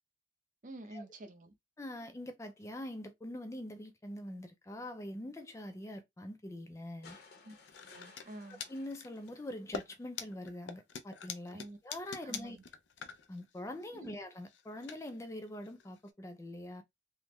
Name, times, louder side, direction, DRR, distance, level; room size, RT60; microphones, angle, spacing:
voice 1, 0.6-1.5 7.4-7.5 7.9-8.6 11.5-11.8 12.2-12.6 13.9-14.2, right 1 dB, 45° right, 0.7 m, -48 dB
voice 2, 1.8-7.2 8.5-12.6 13.3-16.8, left 1 dB, 15° left, 0.4 m, -44 dB
sound 1, 7.0-10.3 11.7-11.8, left 4 dB, 60° left, 0.8 m, -59 dB
sound 2, 7.7-8.3 8.5-9.3 9.7-16.1, left 6 dB, 90° left, 0.5 m, -45 dB
3.5 x 2.1 x 3.0 m
head